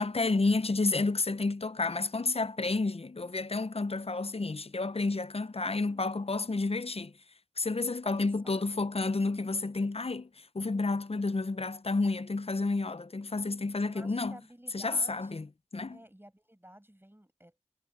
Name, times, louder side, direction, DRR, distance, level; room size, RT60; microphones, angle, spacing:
voice 1, 0.0-7.1 7.6-14.4 14.7-15.5 15.7-16.0, left 3 dB, 50° left, 0.6 m, -30 dB
voice 2, 5.6-6.1 8.0-8.6 13.8-15.4 15.9-17.6, right 1 dB, 15° right, 7.7 m, -53 dB
wide cardioid pair, 45°, 13 cm